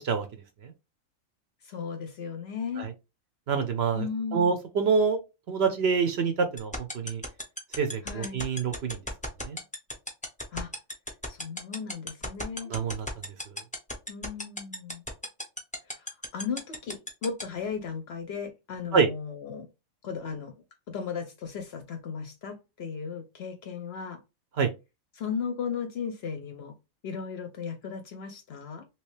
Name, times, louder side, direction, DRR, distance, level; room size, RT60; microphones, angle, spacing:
voice 1, 1.6-2.9 3.9-4.5 8.0-8.4 10.5-10.7 11.3-12.7 14.1-15.0 15.9-19.7 20.0-20.5 20.9-24.2 25.1-26.7 27.0-28.9, left 6 dB, 60° left, 0.7 m, -36 dB
voice 2, 3.5-4.1 4.3-5.2 5.5-7.2 7.8-9.0 9.4-9.6 12.7-13.1 18.9-19.1 24.6-24.7, right 5 dB, 60° right, 0.7 m, -26 dB
sound 1, 6.6-17.4, left 1 dB, 10° left, 0.4 m, -33 dB
3.0 x 3.0 x 3.1 m
omnidirectional pair, 1.4 m